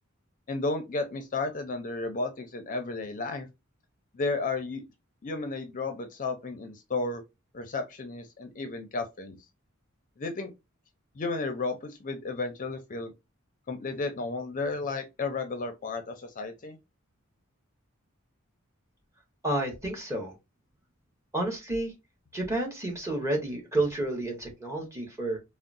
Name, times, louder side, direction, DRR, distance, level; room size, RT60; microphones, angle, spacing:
voice 1, 0.5-3.5 4.1-4.9 5.2-7.2 7.5-9.4 10.2-10.5 11.2-13.1 13.7-16.8, left 3 dB, 40° left, 0.5 m, -33 dB
voice 2, 19.4-20.3 21.3-21.9 22.3-25.4, right 2 dB, 15° right, 1.0 m, -30 dB
3.8 x 2.0 x 2.5 m
head